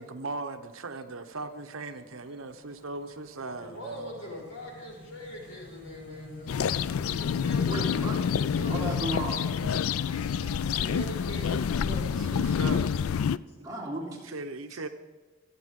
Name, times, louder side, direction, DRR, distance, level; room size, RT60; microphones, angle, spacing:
voice 1, 0.0-4.3 11.8-12.9 14.2-14.9, right 3 dB, 75° right, 8 dB, 0.9 m, -39 dB
sound 1, 0.7-9.0, left 1 dB, 40° left, 2.7 m, -48 dB
voice 2, 3.6-8.2 8.5-9.0 10.6-12.5 13.5-13.6, equal, 65° left, -2 dB, 5.4 m, -42 dB
sound 2, 6.5-13.4, left 7 dB, 85° left, 0.4 m, -28 dB
voice 3, 7.7-8.2 8.7-9.5 10.1-10.5 13.5-14.3, right 2 dB, 15° right, -5 dB, 3.2 m, -35 dB
sound 3, 8.8-11.9, equal, 5° left, 1.6 m, -52 dB
26.5 x 9.1 x 3.7 m, 1.3 s
head